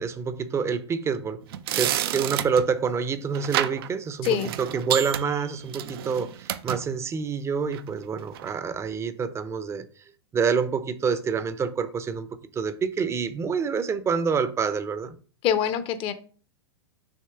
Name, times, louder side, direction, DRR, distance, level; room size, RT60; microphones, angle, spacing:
voice 1, 0.0-1.4 1.8-9.9 10.3-12.3 12.5-15.2, right 6 dB, 20° right, 0.7 m, -27 dB
sound 1, 1.4-2.7 3.3-3.9 4.2-6.8 7.7-7.9 8.3-8.5, right 12 dB, 60° right, 0.5 m, -30 dB
voice 2, 15.4-16.1, left 9 dB, 40° left, 0.8 m, -24 dB
6.5 x 3.0 x 5.8 m
hypercardioid pair, 100°, 14 cm